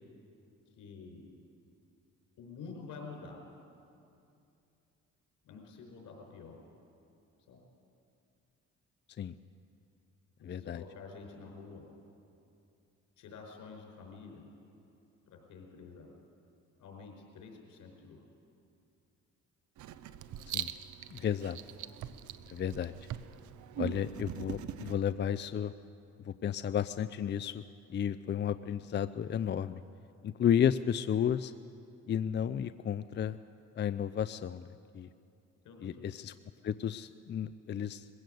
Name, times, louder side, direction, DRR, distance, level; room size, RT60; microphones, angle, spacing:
voice 1, 0.8-1.3 2.4-3.4 5.4-6.6 7.5-7.6 10.4-11.8 13.2-14.4 15.3-16.1 16.8-18.2 35.6-36.0, left 4 dB, 80° left, 2 dB, 4.8 m, -49 dB
voice 2, 10.4-10.8 20.5-20.7 21.1-21.6 22.5-22.9 23.8-25.7 26.2-27.6 27.9-29.8 30.2-31.5 32.1-33.4 33.8-35.1 35.8-36.3 36.6-38.1, left 9 dB, 35° left, 13 dB, 0.5 m, -32 dB
Writing, 19.8-24.9, right 11 dB, 75° right, 0.8 m, -42 dB
21.5 x 16.0 x 7.8 m, 2.6 s
cardioid pair, 90°, 30 cm